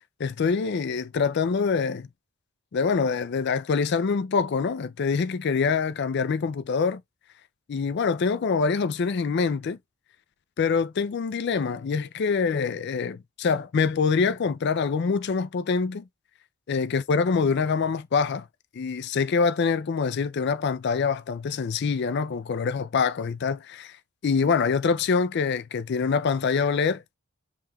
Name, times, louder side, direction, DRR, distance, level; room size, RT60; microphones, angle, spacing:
voice 1, 0.2-2.1 2.7-7.0 7.7-9.8 10.6-16.0 16.7-18.5 18.7-24.0 24.2-27.0, left 5 dB, 50° left, 0.3 m, -25 dB
5.5 x 3.1 x 2.3 m
head